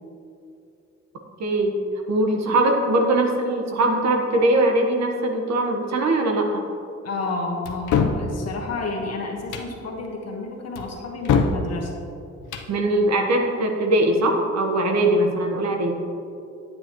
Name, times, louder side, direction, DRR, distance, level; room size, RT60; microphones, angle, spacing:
voice 1, 1.4-1.8 2.1-6.6 12.7-16.0, right 1 dB, 60° right, 2 dB, 1.3 m, -21 dB
voice 2, 7.0-11.9, left 3 dB, 55° left, 1 dB, 1.5 m, -30 dB
sound 1, 7.6-8.2 9.4-9.7 10.7-11.6 12.4-12.7, left 6 dB, 75° left, 0.9 m, -23 dB
9.3 x 9.1 x 3.1 m, 2.6 s
cardioid pair, 90°, 30 cm